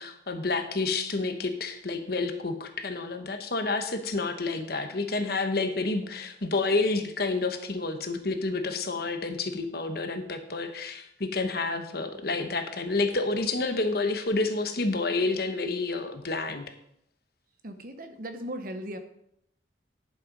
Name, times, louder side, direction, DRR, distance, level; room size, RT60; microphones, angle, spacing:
voice 1, 0.0-16.6, left 3 dB, 55° left, 7 dB, 1.1 m, -29 dB
voice 2, 17.6-19.0, right 1 dB, 50° right, 8 dB, 1.0 m, -37 dB
11.0 x 6.9 x 5.2 m, 0.75 s
head